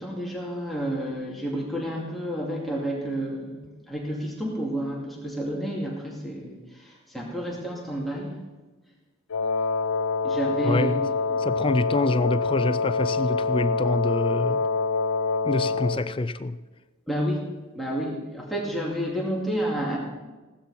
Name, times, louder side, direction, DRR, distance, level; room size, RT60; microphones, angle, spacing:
voice 1, 0.0-8.4 10.2-10.9 11.3-11.4 17.1-17.4 17.7-20.0, equal, ahead, 2.3 m, -30 dB
Wind instrument woodwind instrument, 9.3-16.1, left 4 dB, 85° left, 0.6 m, -26 dB
voice 2, 10.6-11.1 11.4-14.7 15.4-16.6, left 2 dB, 25° left, 0.4 m, -26 dB
16.0 x 12.5 x 4.2 m
head